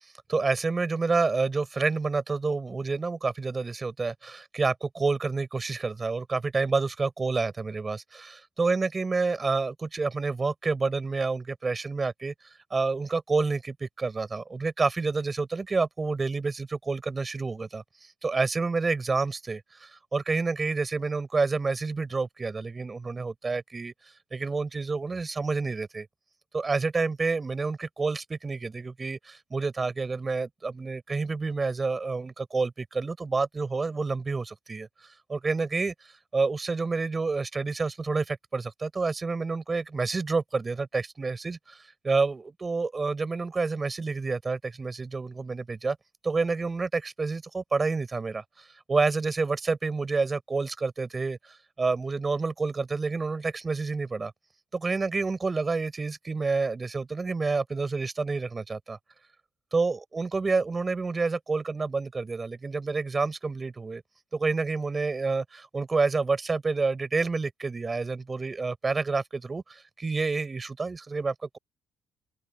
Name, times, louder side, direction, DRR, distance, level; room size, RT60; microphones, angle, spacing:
voice 1, 0.3-12.3 12.7-17.8 18.2-23.9 24.3-26.1 26.5-34.9 35.3-46.0 46.2-54.3 54.7-59.0 59.7-64.0 64.3-71.6, right 4 dB, 30° right, 4.5 m, -29 dB
open air
cardioid pair, 90°, 0 cm